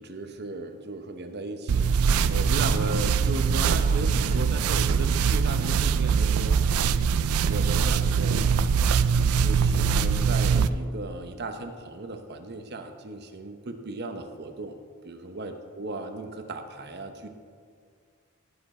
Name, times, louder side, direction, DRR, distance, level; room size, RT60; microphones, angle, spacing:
voice 1, 0.0-6.6 7.4-8.7 9.4-14.8 15.0-17.3, right 2 dB, 50° right, 6 dB, 0.9 m, -36 dB
sound 1, 1.7-10.7, right 6 dB, 80° right, 0.4 m, -23 dB
17.5 x 6.9 x 4.4 m, 2.1 s
head